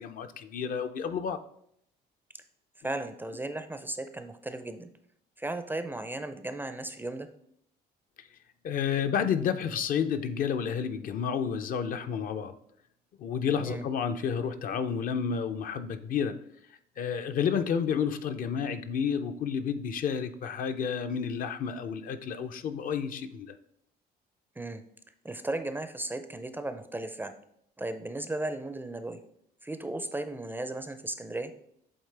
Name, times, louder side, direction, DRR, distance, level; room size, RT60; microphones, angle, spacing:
voice 1, 0.0-1.4 8.6-12.5 13.2-16.4 17.0-23.5, left 7 dB, 55° left, 9 dB, 0.5 m, -30 dB
voice 2, 2.8-4.9 5.4-7.3 13.6-13.8 24.6-24.8 25.2-27.3 27.8-29.2 29.6-31.5, right 2 dB, 10° right, 9 dB, 0.4 m, -35 dB
8.0 x 3.6 x 3.3 m, 0.70 s
cardioid pair, 110°, 17 cm